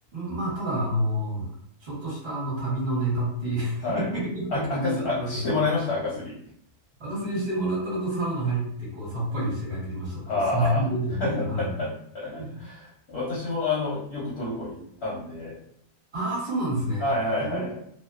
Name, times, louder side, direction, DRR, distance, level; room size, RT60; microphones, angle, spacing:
voice 1, 0.1-1.5 1.8-5.5 7.0-11.7 12.4-12.7 16.1-17.1 17.4-17.6, right 1 dB, 45° right, -5 dB, 1.0 m, -29 dB
voice 2, 4.5-6.4 10.3-10.8 11.2-15.6 17.0-17.7, left 2 dB, 60° left, -6 dB, 0.7 m, -28 dB
2.6 x 2.0 x 2.3 m, 0.68 s
omnidirectional pair, 1.7 m